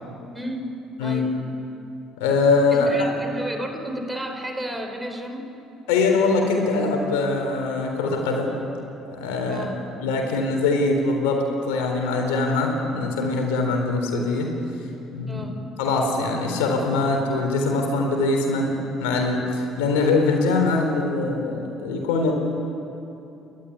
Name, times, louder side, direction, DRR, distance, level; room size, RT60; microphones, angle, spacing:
voice 1, 0.3-0.7 1.0-1.3 2.7-5.5 9.5-9.8 15.3-15.5, equal, 10° right, 5 dB, 4.2 m, -32 dB
voice 2, 2.2-3.1 5.9-8.5 9.1-9.7 10.0-14.5 15.1-15.5 15.8-22.3, left 3 dB, 85° left, 3 dB, 3.8 m, -22 dB
30.0 x 12.5 x 9.6 m, 2.9 s
hypercardioid pair, 65°, 0 cm